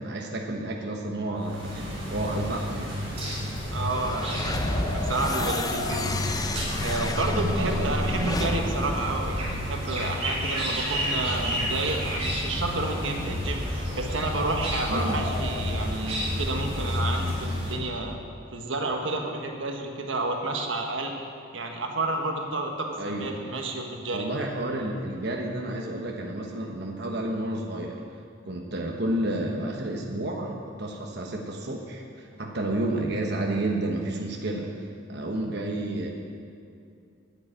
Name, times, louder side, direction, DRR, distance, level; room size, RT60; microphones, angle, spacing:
voice 1, 0.0-3.0 7.5-8.0 14.9-15.2 23.0-23.4 24.1-28.0 28.4-34.7 35.1-36.1, right 1 dB, 55° right, 0 dB, 1.2 m, -31 dB
sound 1, 1.4-17.7, equal, 30° right, 3.5 m, -30 dB
voice 2, 3.7-6.2 6.8-18.2 18.5-21.1 21.5-24.3, right 2 dB, 75° right, 2 dB, 1.3 m, -30 dB
sound 2, 3.9-10.1, left 2 dB, 20° left, 0.5 m, -31 dB
9.7 x 9.4 x 8.7 m, 2.4 s
head